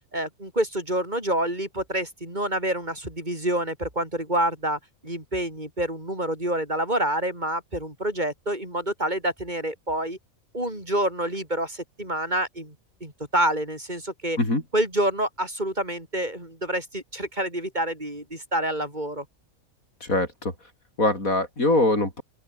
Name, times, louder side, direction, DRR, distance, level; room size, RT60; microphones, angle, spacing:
voice 1, 0.1-10.2 10.5-12.7 13.0-14.4 14.7-19.2, right 1 dB, 30° right, 6.3 m, -27 dB
voice 2, 20.0-20.5 21.0-22.2, left 2 dB, 85° left, 6.9 m, -23 dB
open air
omnidirectional pair, 1.4 m